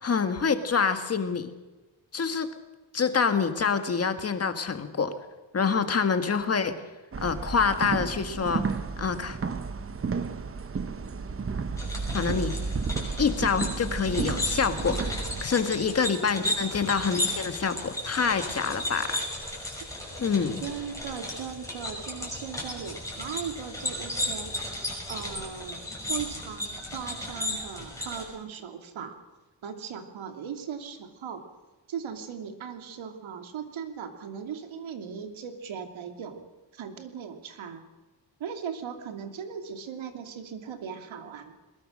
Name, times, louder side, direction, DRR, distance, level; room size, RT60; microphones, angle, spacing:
voice 1, 0.0-1.5 2.1-2.5 2.9-5.1 5.5-6.8 7.2-8.6 9.0-9.4 12.1-12.5 13.2-19.2 20.2-20.6, left 5 dB, 30° left, 8 dB, 1.7 m, -26 dB
sound 1, 7.1-15.4, right 4 dB, 30° right, 1.0 m, -32 dB
sound 2, 11.8-28.2, left 1 dB, 5° left, 6.2 m, -35 dB
voice 2, 14.2-14.6 20.6-24.5 25.1-25.8 26.1-29.2 29.6-31.4 31.9-37.8 38.4-41.5, right 7 dB, 90° right, 6 dB, 2.9 m, -38 dB
22.0 x 21.0 x 6.5 m, 1.2 s
wide cardioid pair, 180°, 46 cm